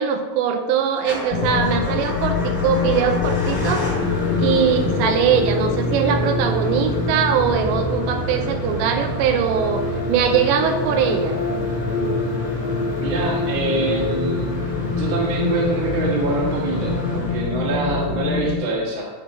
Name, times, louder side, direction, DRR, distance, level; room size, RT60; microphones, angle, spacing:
voice 1, 0.0-3.9 4.4-11.4, right 7 dB, 85° right, 6 dB, 2.7 m, -21 dB
Motor vehicle (road) / Engine starting / Idling, 1.0-17.9, right 2 dB, 20° left, 1.2 m, -30 dB
sound 1, 1.3-18.6, left 5 dB, 85° left, 2.8 m, -25 dB
voice 2, 13.0-14.5 14.9-19.1, right 2 dB, 55° right, -4 dB, 1.3 m, -24 dB
8.6 x 5.1 x 4.4 m, 1.4 s
omnidirectional pair, 5.2 m